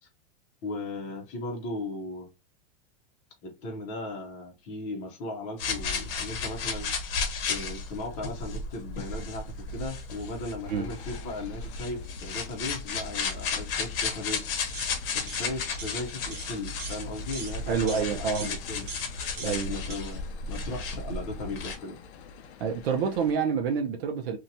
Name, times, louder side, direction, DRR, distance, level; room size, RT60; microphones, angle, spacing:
voice 1, 0.6-2.3 3.4-6.9 7.5-9.4 9.7-14.5 15.1-18.9 19.4-22.0, left 2 dB, 25° left, 0.6 m, -37 dB
sound 1, 5.6-21.8, left 5 dB, 60° left, 0.8 m, -34 dB
sound 2, 10.6-23.3, left 6 dB, 90° left, 0.6 m, -50 dB
sound 3, 14.7-14.9 15.3-15.4 15.8-16.0 16.3-16.5 16.8-17.0 17.3-17.5 17.9-18.0 18.3-18.5 18.9-19.1 19.4-19.6 19.9-20.0, right 2 dB, 25° right, 0.9 m, -39 dB
voice 2, 17.7-18.5 19.4-19.7 22.6-24.4, right 6 dB, 65° right, 0.6 m, -27 dB
2.8 x 2.2 x 2.6 m
supercardioid pair, 170°, 32 cm